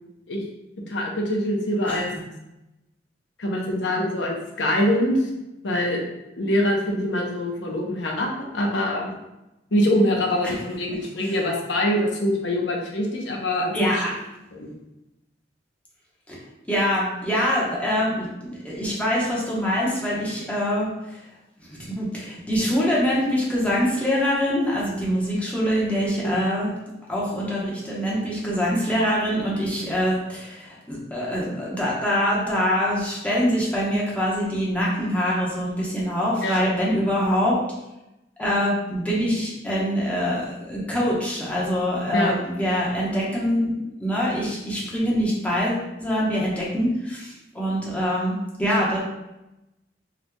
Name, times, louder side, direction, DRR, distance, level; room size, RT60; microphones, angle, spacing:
voice 1, 0.9-2.1 3.4-5.3 5.6-6.0 6.4-9.1 9.7-14.0 14.5-14.7 26.2-26.3 36.4-36.7 42.1-42.3, left 1 dB, 75° left, 0 dB, 0.8 m, -24 dB
voice 2, 10.9-11.3 13.7-14.1 16.3-16.4 16.7-20.9 22.0-26.7 27.1-37.6 38.4-49.0, equal, 10° left, -6 dB, 1.0 m, -24 dB
4.7 x 3.2 x 2.2 m, 0.93 s
head